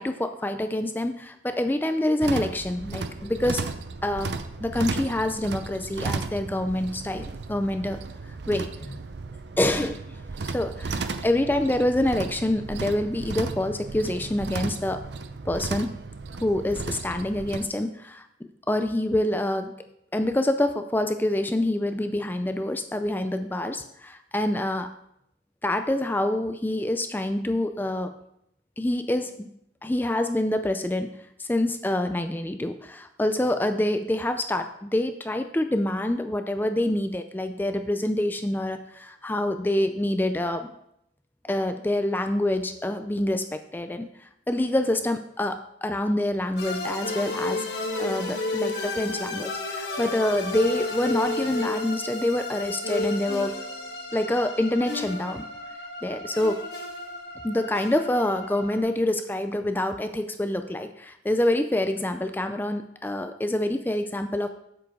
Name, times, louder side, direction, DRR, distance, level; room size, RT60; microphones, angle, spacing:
voice 1, 0.0-3.6 4.0-4.3 4.6-8.0 8.5-9.0 9.6-10.0 10.4-15.0 15.5-15.9 16.4-18.2 18.7-19.7 20.1-24.9 25.6-28.1 28.8-29.5 29.8-40.7 41.4-47.7 48.0-53.6 54.1-55.5 56.0-56.6 57.4-64.5, left 1 dB, 10° left, 8 dB, 0.4 m, -26 dB
sound 1, 2.2-17.7, right 4 dB, 70° right, 0.6 m, -35 dB
sound 2, 46.6-58.8, left 2 dB, 65° left, 1.5 m, -32 dB
7.8 x 7.5 x 4.7 m, 0.76 s
head